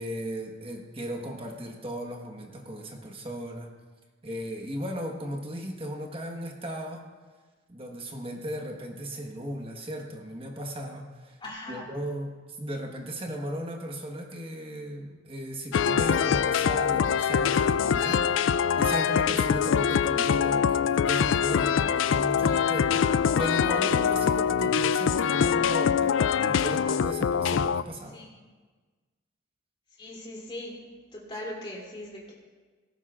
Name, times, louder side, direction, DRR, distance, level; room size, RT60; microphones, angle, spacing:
voice 1, 0.0-3.7 4.2-7.1 7.7-11.4 11.7-26.2 26.4-28.2, equal, 30° right, 1 dB, 1.3 m, -36 dB
voice 2, 11.4-11.8 28.1-28.4 30.0-30.8 31.1-32.3, left 1 dB, 25° left, -4 dB, 3.1 m, -39 dB
sound 1, 15.7-27.8, left 7 dB, 80° left, 0.3 m, -24 dB
18.0 x 15.5 x 2.5 m, 1.4 s
head